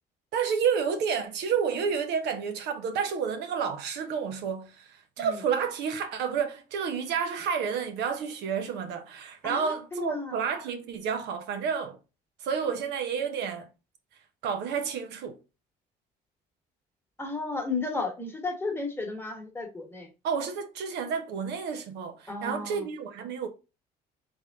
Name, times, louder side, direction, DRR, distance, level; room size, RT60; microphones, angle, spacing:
voice 1, 0.3-12.0 12.4-13.7 14.4-15.4 20.2-23.5, right 6 dB, 85° right, 0.8 m, -30 dB
voice 2, 9.4-10.3 17.2-20.1 22.3-22.8, left 3 dB, 15° left, 1.2 m, -33 dB
3.6 x 3.2 x 3.5 m
cardioid pair, 110°, 17 cm